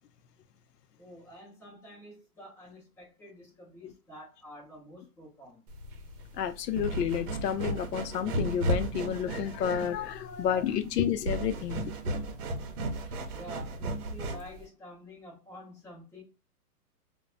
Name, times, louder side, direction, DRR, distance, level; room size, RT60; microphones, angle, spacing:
voice 1, 1.0-5.6 12.2-12.9 13.3-16.2, equal, 5° left, 0.7 m, -49 dB
sound 1, 5.7-14.6, right 1 dB, 65° right, 0.7 m, -34 dB
voice 2, 6.3-11.8, left 9 dB, 90° left, 0.6 m, -30 dB
2.2 x 2.1 x 3.7 m
hypercardioid pair, 155°, 47 cm